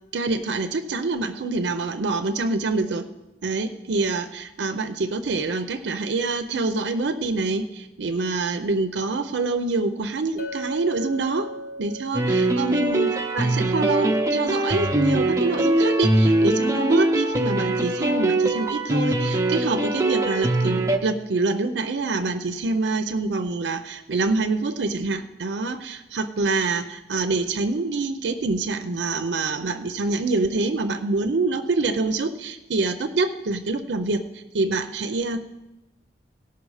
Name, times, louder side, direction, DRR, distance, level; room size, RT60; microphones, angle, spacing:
voice 1, 0.1-3.1 3.4-11.5 11.8-35.5, right 3 dB, 85° right, 8 dB, 0.5 m, -26 dB
Chink clink, 10.4-14.6, equal, 60° left, 1.2 m, -38 dB
sound 1, 12.1-21.0, right 1 dB, 15° right, 0.6 m, -22 dB
17.0 x 5.8 x 4.8 m, 1.0 s
head